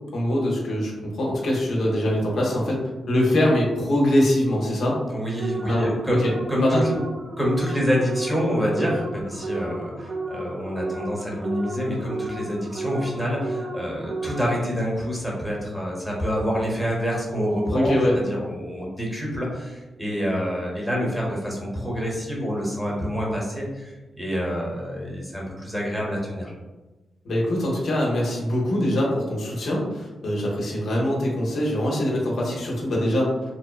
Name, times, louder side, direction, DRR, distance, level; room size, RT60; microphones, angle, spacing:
voice 1, 0.1-2.8 3.1-5.0 5.6-5.9 6.2-6.3 6.6-6.8 17.7-18.1 27.2-33.3, left 1 dB, 75° left, -3 dB, 0.6 m, -23 dB
voice 2, 5.1-6.2 6.5-6.9 7.4-26.5, equal, 5° right, -3 dB, 0.9 m, -27 dB
sound 1, 5.4-14.8, right 2 dB, 85° right, 0.5 m, -33 dB
2.7 x 2.1 x 2.2 m, 1.1 s
cardioid pair, 60°, 0 cm